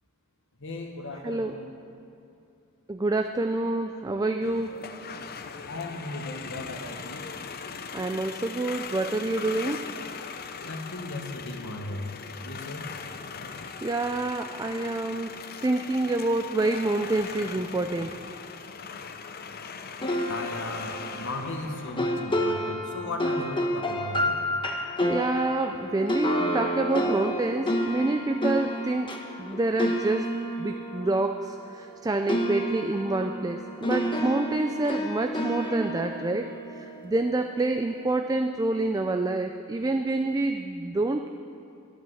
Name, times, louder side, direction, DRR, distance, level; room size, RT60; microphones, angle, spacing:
voice 1, 0.6-1.6 5.7-7.3 10.6-12.2 12.4-12.8 20.3-24.4, left 2 dB, 60° left, 3 dB, 1.5 m, -36 dB
voice 2, 1.2-1.6 2.9-4.8 7.9-9.9 13.8-15.4 15.6-18.2 25.1-30.3 30.6-41.3, right 2 dB, 15° right, 6 dB, 0.4 m, -27 dB
sound 1, 4.4-22.0, left 5 dB, 45° left, 0.6 m, -40 dB
sound 2, 20.0-32.0 32.3-37.5, equal, 25° left, 1.1 m, -30 dB
12.0 x 11.0 x 7.8 m, 2.6 s
head